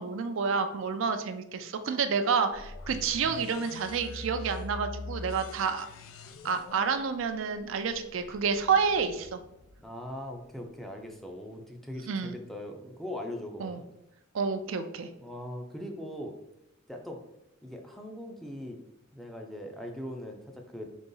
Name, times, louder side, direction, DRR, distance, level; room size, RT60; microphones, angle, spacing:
voice 1, 0.0-5.9 6.4-9.4 12.0-12.4 13.6-13.8 14.3-15.1, right 5 dB, 70° right, 8 dB, 0.4 m, -29 dB
sound 1, 2.5-10.4, left 3 dB, 90° left, 0.4 m, -44 dB
voice 2, 9.8-13.8 15.2-16.3 16.9-17.2 17.6-18.8 19.1-20.9, left 1 dB, ahead, 2 dB, 0.5 m, -40 dB
4.0 x 3.0 x 3.8 m, 0.82 s
head